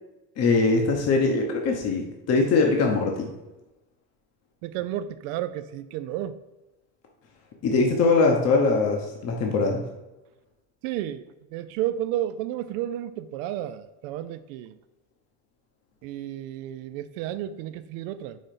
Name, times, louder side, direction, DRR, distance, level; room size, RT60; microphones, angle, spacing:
voice 1, 0.4-3.3 7.6-9.8, left 3 dB, 40° left, 1 dB, 0.9 m, -22 dB
voice 2, 4.6-6.4 10.8-14.8 16.0-18.4, right 12 dB, 75° right, 12 dB, 0.5 m, -32 dB
5.1 x 3.9 x 5.8 m, 1.0 s
cardioid pair, 140°, 41 cm